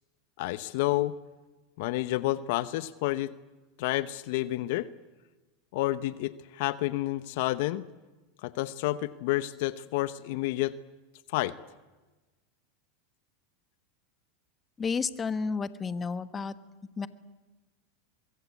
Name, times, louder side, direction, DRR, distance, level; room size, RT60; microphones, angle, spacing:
voice 1, 0.4-1.1 1.8-3.3 3.8-4.9 5.7-7.9 8.4-10.7 11.3-11.5, left 17 dB, 65° left, 16 dB, 0.9 m, -29 dB
voice 2, 14.8-16.5 17.0-17.1, left 5 dB, 20° left, 13 dB, 1.2 m, -31 dB
24.0 x 22.5 x 8.4 m, 1.2 s
supercardioid pair, 120°, 0 cm